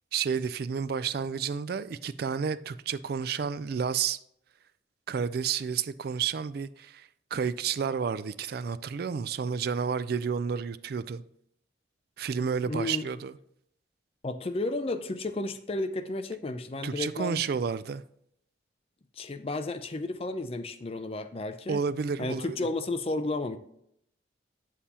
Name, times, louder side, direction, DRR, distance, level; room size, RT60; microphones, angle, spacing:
voice 1, 0.1-4.2 5.1-11.2 12.2-13.3 16.8-18.0 21.7-22.7, right 6 dB, 55° right, 0.3 m, -31 dB
voice 2, 12.6-13.1 14.2-17.4 19.2-21.8 22.2-23.6, left 2 dB, 30° left, 0.4 m, -32 dB
8.2 x 7.3 x 2.9 m
head